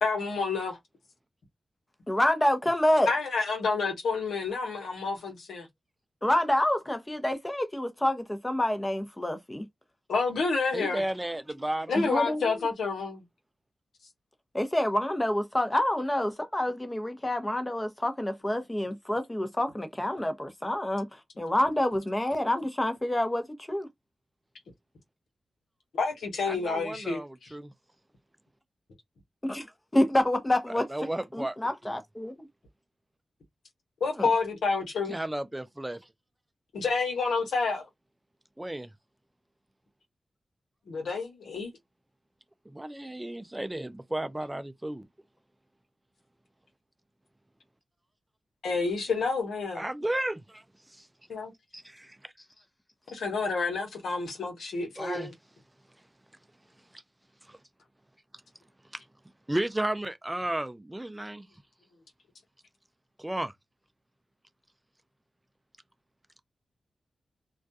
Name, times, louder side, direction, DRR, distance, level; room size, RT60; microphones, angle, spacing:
voice 1, 0.0-0.8 3.1-5.7 10.1-11.0 11.9-13.2 25.9-27.5 34.0-35.2 36.7-37.9 40.9-41.7 48.6-49.8 51.3-51.5 53.1-55.3, left 4 dB, 90° left, 0.9 m, -29 dB
voice 2, 2.1-3.1 6.2-9.6 12.1-12.7 14.5-21.1 21.4-23.9 29.4-29.7 29.9-30.9 31.3-32.5 34.2-34.3, left 1 dB, 20° left, 0.7 m, -27 dB
voice 3, 10.7-11.9 26.5-27.7 30.9-31.6 31.8-31.9 35.1-36.0 38.6-38.9 42.7-45.1 49.7-50.6 50.9-51.1 51.7-52.2 55.0-55.3 57.5-57.6 58.9-59.0 59.5-61.5 63.2-63.5, right 1 dB, 15° right, 0.4 m, -33 dB
2.3 x 2.2 x 2.6 m
cardioid pair, 55°, 0 cm